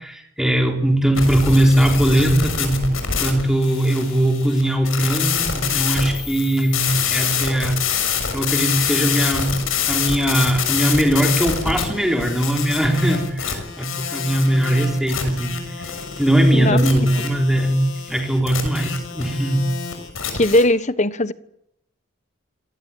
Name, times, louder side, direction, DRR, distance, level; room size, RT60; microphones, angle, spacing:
voice 1, 0.0-2.9 3.2-8.1 8.3-9.6 9.9-19.8, right 1 dB, ahead, 2 dB, 3.9 m, -20 dB
sound 1, 1.2-20.6, left 6 dB, 80° left, 6.6 m, -26 dB
voice 2, 20.3-21.3, left 1 dB, 35° left, 14 dB, 1.2 m, -18 dB
27.5 x 19.0 x 9.2 m, 0.79 s
head